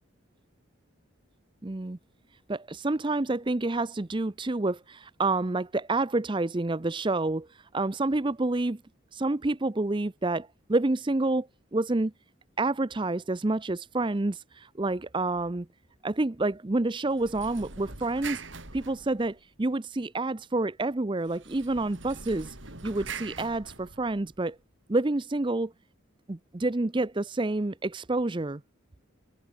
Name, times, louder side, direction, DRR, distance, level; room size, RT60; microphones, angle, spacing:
voice 1, 1.6-2.0 2.5-7.5 7.7-8.8 9.1-12.1 12.6-15.7 16.0-18.4 18.7-22.5 22.8-24.6 24.9-25.7 26.3-28.6, right 2 dB, 20° right, 0.5 m, -28 dB
sound 1, 17.1-19.6 21.2-24.4, right 4 dB, 60° right, 7.5 m, -43 dB
head